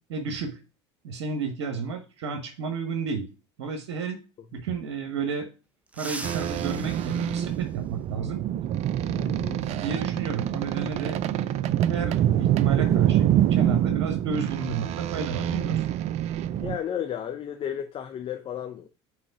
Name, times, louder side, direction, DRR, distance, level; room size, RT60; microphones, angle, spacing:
voice 1, 0.1-0.6 1.0-3.2 3.6-4.2 4.5-5.5 5.9-8.4 8.9-15.8, right 5 dB, 75° right, 1.0 m, -32 dB
sound 1, 5.9-8.3 9.9-10.0 11.3-11.4 13.0-13.1 13.5-13.7 14.2-16.4 16.6-16.9 17.3-17.8, right 2 dB, 10° right, 0.8 m, -44 dB
sound 2, 6.2-16.8, right 11 dB, 50° right, 0.5 m, -26 dB
voice 2, 9.2-9.6 16.6-18.9, left 9 dB, 40° left, 0.7 m, -33 dB
4.9 x 4.1 x 5.6 m
hypercardioid pair, 75°, 15 cm